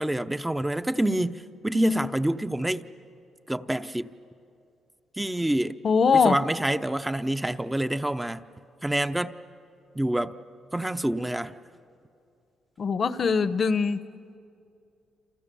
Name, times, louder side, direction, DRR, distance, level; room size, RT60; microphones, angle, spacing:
voice 1, 0.0-2.9 3.5-4.1 5.2-5.8 6.1-8.4 8.8-9.3 9.9-10.4 10.7-11.5, right 1 dB, 10° right, 0.7 m, -27 dB
voice 2, 5.8-6.4 12.8-14.1, left 5 dB, 45° left, 0.9 m, -22 dB
29.0 x 27.5 x 7.0 m
cardioid pair, 90°, 0 cm